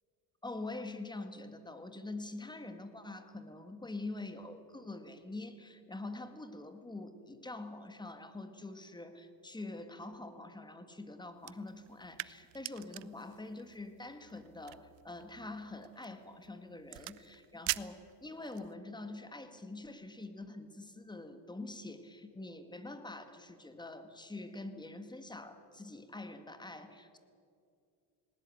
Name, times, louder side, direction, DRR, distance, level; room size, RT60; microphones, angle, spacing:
voice 1, 0.4-27.2, left 2 dB, 10° left, 9 dB, 1.9 m, -45 dB
sound 1, 11.4-18.7, right 23 dB, 80° right, 0.7 m, -45 dB
19.5 x 19.0 x 9.2 m, 2.5 s
cardioid pair, 120°, 43 cm